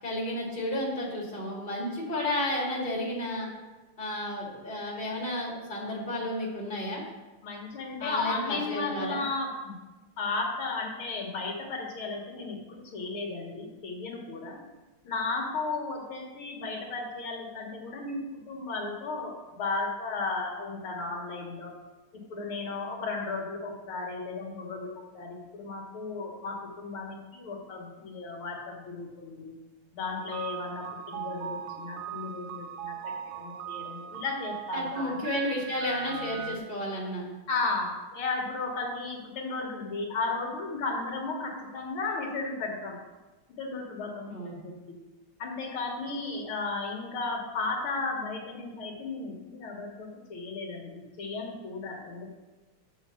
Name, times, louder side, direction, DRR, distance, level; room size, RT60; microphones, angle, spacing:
voice 1, 0.0-3.5 4.0-7.0 8.0-9.2 34.7-37.2 44.3-44.7, left 1 dB, 25° left, -3 dB, 2.3 m, -32 dB
voice 2, 7.4-9.8 10.2-14.6 15.0-21.7 22.1-24.9 25.1-29.5 29.9-35.3 37.5-43.0 43.6-45.0 45.4-52.4, left 3 dB, 80° left, 1 dB, 2.1 m, -34 dB
sound 1, 30.1-36.6, right 8 dB, 85° right, 0.8 m, -39 dB
6.6 x 5.7 x 6.8 m, 1.2 s
omnidirectional pair, 2.3 m